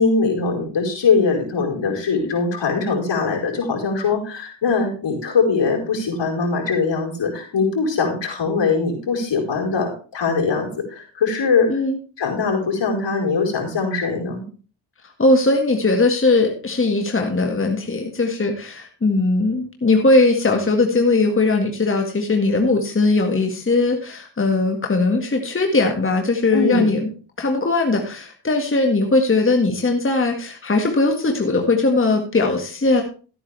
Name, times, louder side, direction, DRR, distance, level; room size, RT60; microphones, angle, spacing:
voice 1, 0.0-11.7 12.2-14.4 26.5-26.9, left 4 dB, 65° left, 1 dB, 4.8 m, -21 dB
voice 2, 15.2-27.1 27.4-33.0, left 3 dB, 25° left, 3 dB, 1.9 m, -19 dB
14.5 x 9.0 x 3.4 m, 0.37 s
cardioid pair, 60°, 47 cm